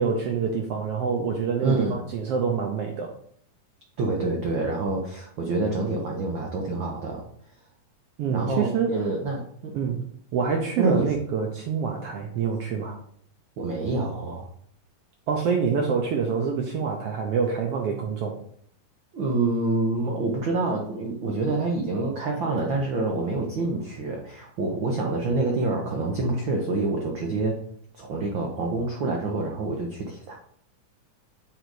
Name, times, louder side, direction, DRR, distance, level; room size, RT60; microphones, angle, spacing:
voice 1, 0.0-3.1 8.2-9.0 9.7-10.0 10.3-13.0 15.3-18.4, right 6 dB, 75° right, 2 dB, 1.5 m, -26 dB
voice 2, 1.6-2.0 4.0-7.2 8.3-9.7 10.8-11.1 13.6-14.5 19.1-27.6 27.9-30.4, right 3 dB, 90° right, 0 dB, 1.0 m, -27 dB
7.8 x 3.9 x 4.8 m, 0.63 s
omnidirectional pair, 3.5 m